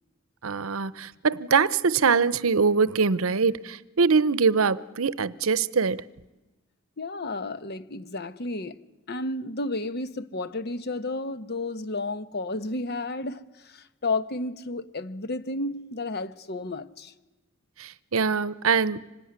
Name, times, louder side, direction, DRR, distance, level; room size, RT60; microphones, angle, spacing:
voice 1, 0.4-6.0 17.8-19.0, right 5 dB, 75° right, 0.8 m, -23 dB
voice 2, 7.0-8.8 9.1-17.1, left 2 dB, 50° left, 1.0 m, -32 dB
25.5 x 19.0 x 9.6 m
head